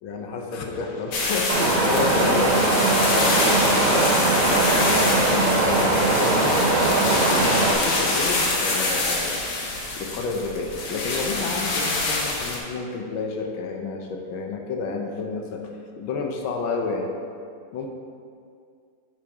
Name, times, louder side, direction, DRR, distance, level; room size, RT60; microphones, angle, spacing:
voice 1, 0.0-2.7 3.1-9.4 10.0-15.6 16.0-17.1 17.7-17.9, left 4 dB, 75° left, 2 dB, 1.5 m, -30 dB
sound 1, 1.1-12.6, left 2 dB, 90° left, 2.0 m, -26 dB
Wind, 1.5-7.7, right 2 dB, 75° right, 1.7 m, -21 dB
6.1 x 5.7 x 4.8 m, 2.3 s
omnidirectional pair, 2.3 m